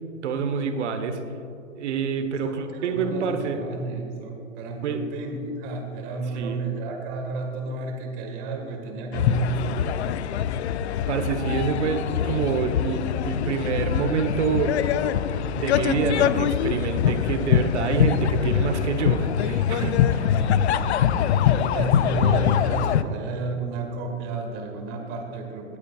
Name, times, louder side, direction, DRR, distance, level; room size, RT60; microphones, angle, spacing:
voice 1, 0.2-1.2 1.7-3.6 4.8-5.1 6.4-6.6 11.1-14.8 15.5-20.4, right 5 dB, 60° right, 7 dB, 1.1 m, -27 dB
voice 2, 2.4-9.7 21.6-25.8, right 3 dB, 30° right, 2 dB, 1.8 m, -32 dB
sound 1, 9.1-23.0, left 9 dB, 60° left, 0.5 m, -23 dB
18.5 x 8.5 x 2.4 m, 2.8 s
hypercardioid pair, 135°, 39 cm